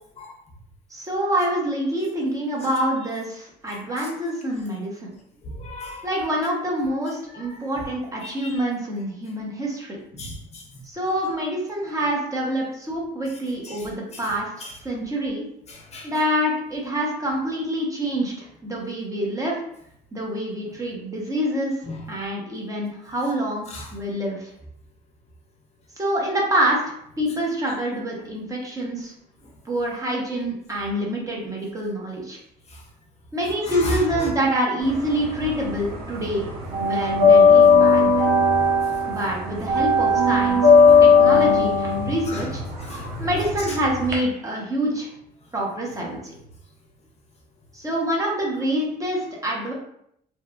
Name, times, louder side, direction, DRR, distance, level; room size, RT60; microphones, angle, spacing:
voice 1, 0.9-5.1 6.0-10.0 10.8-15.5 16.0-19.6 20.1-21.8 22.1-24.5 26.0-29.1 29.6-32.4 33.3-36.4 36.8-38.3 39.1-40.6 41.0-42.6 43.2-45.1 45.5-46.3 47.7-49.7, equal, 20° right, -3 dB, 0.8 m, -26 dB
voice 2, 5.4-6.1 7.3-7.6 8.2-8.6 10.1-10.6 13.6-13.9 14.6-14.7 15.7-16.1 21.9-22.0 23.7-23.9 32.7-32.8 33.6-34.3 40.8-41.1 42.3-42.5 42.8-43.1 43.7-43.8, equal, 40° left, 0 dB, 0.5 m, -34 dB
sound 1, 34.9-36.0 36.2-44.1, left 4 dB, 75° right, 0.7 m, -16 dB
2.7 x 2.2 x 2.3 m, 0.72 s
cardioid pair, 110°, 17 cm